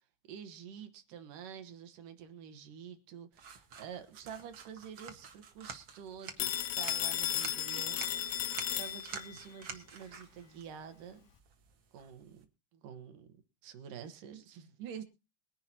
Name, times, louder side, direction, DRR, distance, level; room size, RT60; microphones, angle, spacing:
voice 1, 0.3-11.2 11.9-12.4 12.7-13.3 13.6-15.0, right 8 dB, 65° right, 9 dB, 2.7 m, -48 dB
sound 1, 3.3-12.4, right 6 dB, 50° right, 1.6 m, -49 dB
Telephone, 6.4-9.4, left 11 dB, 75° left, 1.7 m, -34 dB
23.0 x 10.5 x 2.9 m, 0.29 s
omnidirectional pair, 4.5 m